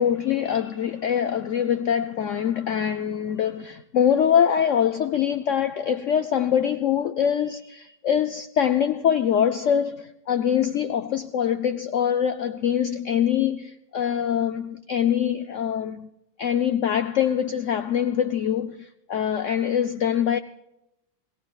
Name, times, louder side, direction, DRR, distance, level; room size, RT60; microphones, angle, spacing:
voice 1, 0.0-16.1 16.4-20.4, left 9 dB, 65° left, 0.8 m, -24 dB
22.5 x 17.5 x 2.4 m
omnidirectional pair, 1.8 m